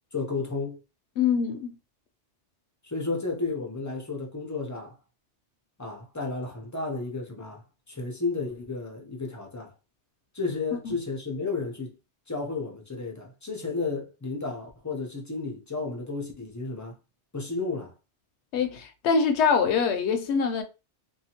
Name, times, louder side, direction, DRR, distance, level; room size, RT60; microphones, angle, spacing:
voice 1, 0.1-0.8 2.8-5.0 5.8-7.6 7.9-9.7 10.3-12.0 12.3-17.0 17.3-17.9, left 3 dB, 25° left, 0.4 m, -32 dB
voice 2, 1.2-1.7 10.7-10.9 18.5-20.6, left 6 dB, 75° left, 0.8 m, -24 dB
2.7 x 2.3 x 2.8 m
omnidirectional pair, 1.2 m